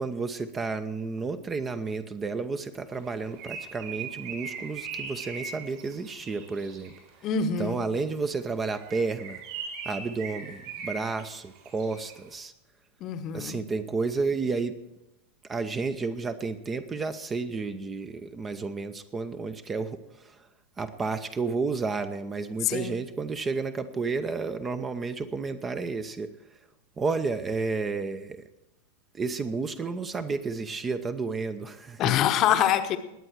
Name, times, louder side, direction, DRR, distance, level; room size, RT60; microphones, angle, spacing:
voice 1, 0.0-6.9 7.6-9.4 9.9-12.5 13.3-14.7 15.5-20.0 20.8-26.3 27.0-28.4 29.1-32.1, right 4 dB, 20° right, 0.8 m, -31 dB
Bird, 3.0-7.1 8.7-12.2, right 5 dB, 45° right, 4.1 m, -40 dB
voice 2, 7.2-7.9 13.0-13.6 22.6-23.0 32.0-33.0, left 9 dB, 35° left, 1.0 m, -25 dB
20.0 x 8.8 x 4.6 m
figure-of-eight pair, 90°, 0 cm